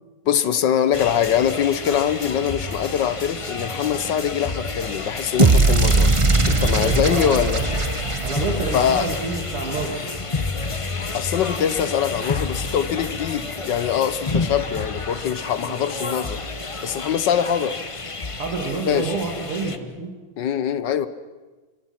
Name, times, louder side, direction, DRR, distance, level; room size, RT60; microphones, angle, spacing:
voice 1, 0.3-6.1 6.5-7.6 8.7-9.1 11.1-16.4 16.8-17.8 18.8-19.1 20.4-21.1, left 9 dB, 60° left, 13 dB, 1.6 m, -23 dB
sound 1, 0.9-19.8, left 3 dB, 40° left, 0.4 m, -30 dB
sound 2, 5.4-9.6, right 3 dB, 30° right, 0.5 m, -20 dB
voice 2, 6.7-7.8 8.2-10.1 15.6-16.0 18.3-20.2, right 3 dB, 85° right, 1 dB, 3.5 m, -29 dB
28.0 x 24.5 x 6.0 m, 1.2 s
omnidirectional pair, 2.4 m